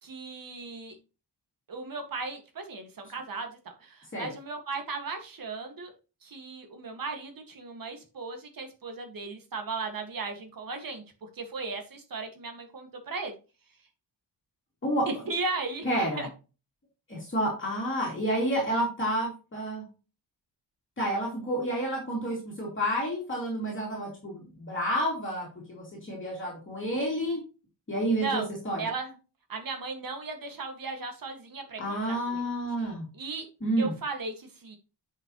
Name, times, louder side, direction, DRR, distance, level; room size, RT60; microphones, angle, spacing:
voice 1, 0.0-1.0 1.7-5.9 6.2-11.0 11.3-13.3 15.1-15.9 16.2-16.3 28.1-28.5 28.8-29.2 29.5-32.4 32.8-33.4 33.8-34.8, right 3 dB, 50° right, 5 dB, 2.0 m, -36 dB
voice 2, 15.8-16.2 17.1-19.8 21.0-27.4 27.9-28.8 31.8-33.1 33.6-33.9, right 1 dB, 25° left, -3 dB, 2.8 m, -30 dB
9.8 x 5.8 x 3.1 m, 0.33 s
wide cardioid pair, 170°, 43 cm